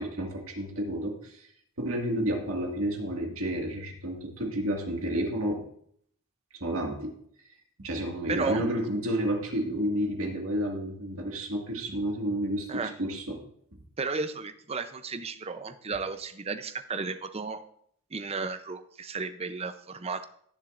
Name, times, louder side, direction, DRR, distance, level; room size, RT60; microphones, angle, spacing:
voice 1, 0.0-1.5 1.8-5.6 6.6-7.2 7.8-13.4, right 1 dB, 80° right, 1 dB, 1.9 m, -30 dB
voice 2, 8.3-8.6 12.7-12.9 14.0-17.6 18.1-20.3, right 4 dB, 30° right, 10 dB, 0.6 m, -33 dB
17.5 x 7.3 x 2.5 m, 0.66 s
head